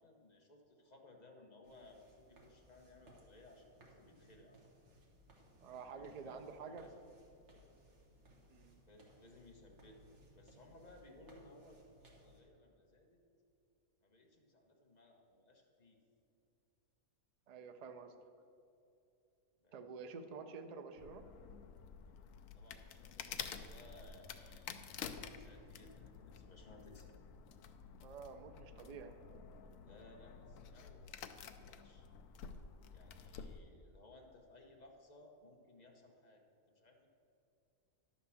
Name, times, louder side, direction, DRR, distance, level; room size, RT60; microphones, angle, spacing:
voice 1, 0.0-4.6 5.9-6.4 6.6-7.1 8.9-13.2 14.0-16.0 19.6-20.1 22.5-24.9 25.3-27.1 29.8-32.1 32.9-36.4 36.7-37.1, left 2 dB, 35° left, 1 dB, 1.0 m, -61 dB
sound 1, 1.6-12.4, right 1 dB, 55° right, 1.6 m, -64 dB
voice 2, 5.6-6.8 8.5-8.8 17.5-18.1 19.7-21.2 28.0-29.2, right 5 dB, 75° right, 7 dB, 0.3 m, -49 dB
sound 2, 21.0-33.6, left 7 dB, 75° left, 0.9 m, -50 dB
11.0 x 4.2 x 7.0 m, 2.7 s
omnidirectional pair, 1.5 m